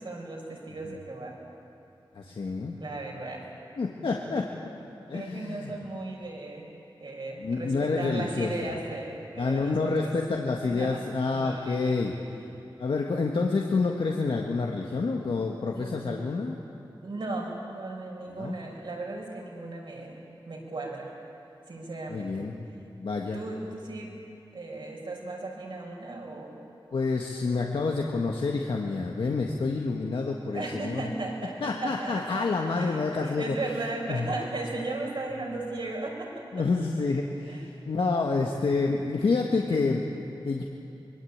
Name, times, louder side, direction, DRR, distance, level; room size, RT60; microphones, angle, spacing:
voice 1, 0.0-1.4 2.8-3.4 5.1-6.7 7.0-10.1 10.6-11.0 11.3-11.9 15.7-16.3 17.0-21.1 21.7-22.5 23.3-24.1 24.5-26.6 30.5-36.5 37.5-37.7, right 2 dB, 65° right, -1 dB, 6.1 m, -36 dB
voice 2, 2.2-2.8 3.8-4.5 5.1-5.7 7.4-8.5 9.4-12.1 12.8-16.6 18.4-18.5 22.1-22.7 23.0-23.4 26.9-31.0 31.6-33.6 34.1-34.3 36.5-37.6 37.9-40.1 40.4-40.6, left 4 dB, 80° left, 0 dB, 1.7 m, -28 dB
24.0 x 22.0 x 8.8 m, 2.8 s
wide cardioid pair, 90°, 9 cm